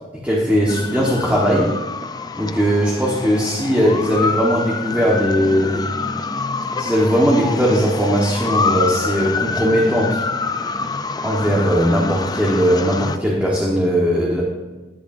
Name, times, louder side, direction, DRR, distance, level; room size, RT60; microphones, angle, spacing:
voice 1, 0.1-1.8 2.4-5.9 6.8-10.2 11.2-14.4, equal, 10° right, -4 dB, 1.3 m, -18 dB
sound 1, 0.7-13.2, left 4 dB, 20° left, 0.4 m, -26 dB
13.5 x 10.0 x 2.6 m, 1.2 s
head